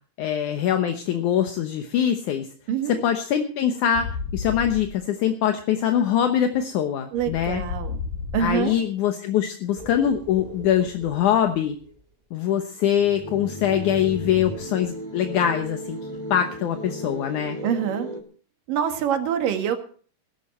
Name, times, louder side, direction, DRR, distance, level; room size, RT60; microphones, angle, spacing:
voice 1, 0.2-2.5 2.9-7.6 8.4-11.8 12.3-16.0 16.3-17.6, left 9 dB, 70° left, 6 dB, 2.5 m, -23 dB
voice 2, 2.7-3.0 7.1-8.0 8.3-8.7 17.6-18.1 18.7-19.8, right 8 dB, 80° right, 7 dB, 3.4 m, -25 dB
sound 1, 3.9-5.0 7.2-8.8 12.9-14.6, left 4 dB, 90° left, 5.1 m, -34 dB
sound 2, 9.8-11.9 12.8-18.2, right 1 dB, 15° right, 1.4 m, -37 dB
16.5 x 14.0 x 4.4 m, 0.43 s
omnidirectional pair, 3.8 m